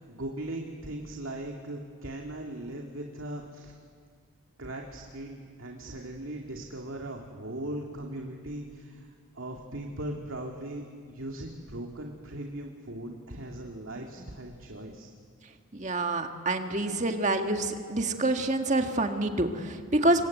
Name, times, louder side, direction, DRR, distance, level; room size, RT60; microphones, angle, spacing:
voice 1, 0.0-3.7 4.6-15.1, right 1 dB, 80° right, 1 dB, 2.3 m, -39 dB
voice 2, 15.7-20.2, right 2 dB, 35° right, 5 dB, 1.8 m, -27 dB
27.0 x 23.5 x 9.3 m, 2.1 s
head